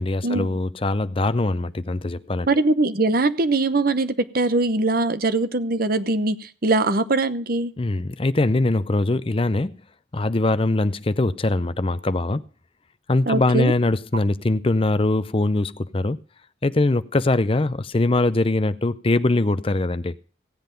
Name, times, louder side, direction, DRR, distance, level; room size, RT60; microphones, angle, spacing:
voice 1, 0.0-2.5 7.8-9.7 10.1-12.4 13.1-16.2 16.6-20.3, left 2 dB, 30° left, 15 dB, 0.5 m, -22 dB
voice 2, 2.5-7.7 13.3-13.7, right 2 dB, 50° right, 12 dB, 0.9 m, -21 dB
16.5 x 8.0 x 5.2 m, 0.41 s
head